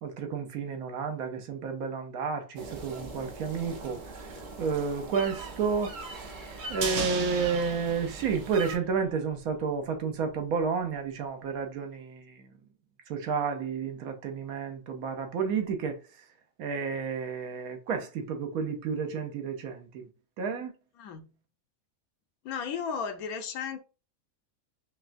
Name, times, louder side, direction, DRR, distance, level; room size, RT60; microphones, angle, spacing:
voice 1, 0.0-4.0 4.6-6.0 6.7-12.2 13.1-16.0 16.6-19.9 20.4-20.7, right 5 dB, 85° right, 1.2 m, -31 dB
sound 1, 2.6-8.8, right 3 dB, 45° right, 0.7 m, -42 dB
sound 2, 6.8-9.2 9.5-9.6, right 6 dB, 65° right, 1.0 m, -35 dB
voice 2, 21.0-21.3 22.4-23.8, left 6 dB, 85° left, 1.2 m, -34 dB
5.2 x 2.3 x 2.6 m
omnidirectional pair, 1.5 m